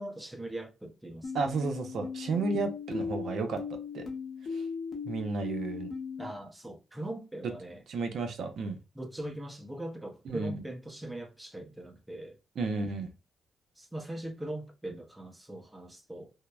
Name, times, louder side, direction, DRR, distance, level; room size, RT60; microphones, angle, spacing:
voice 1, 0.0-1.4 2.5-2.7 6.2-7.8 8.9-12.4 13.8-16.3, right 1 dB, 10° right, 0.6 m, -41 dB
sound 1, 1.2-6.3, left 5 dB, 50° left, 0.8 m, -38 dB
voice 2, 1.3-3.6 3.9-4.1 4.5-4.6 5.0-5.9 7.9-8.8 10.3-10.6 12.6-13.1, right 4 dB, 65° right, 0.6 m, -32 dB
2.8 x 2.0 x 2.2 m
cardioid pair, 90°, 0 cm